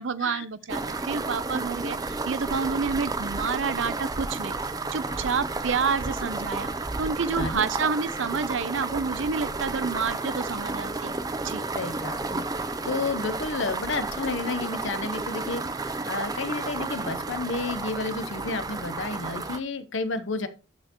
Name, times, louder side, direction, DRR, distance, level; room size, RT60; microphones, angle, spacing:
voice 1, 0.0-4.5 4.9-6.7 7.0-11.1 11.4-11.7, right 5 dB, 70° right, 0.6 m, -29 dB
sound 1, 0.7-19.6, right 3 dB, 20° right, 0.5 m, -32 dB
voice 2, 7.4-7.9 11.7-20.5, left 3 dB, 70° left, 0.9 m, -31 dB
12.0 x 4.5 x 3.0 m
head